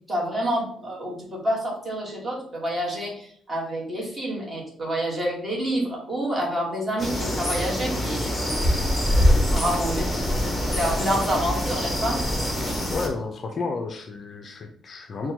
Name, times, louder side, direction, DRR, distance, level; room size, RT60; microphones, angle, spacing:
voice 1, 0.0-12.2, equal, 25° right, -3 dB, 1.3 m, -28 dB
sound 1, 7.0-13.1, equal, 5° left, 0.7 m, -24 dB
voice 2, 12.9-15.3, left 4 dB, 40° left, 4 dB, 0.4 m, -31 dB
5.8 x 2.2 x 2.7 m, 0.64 s
cardioid pair, 150°, 0 cm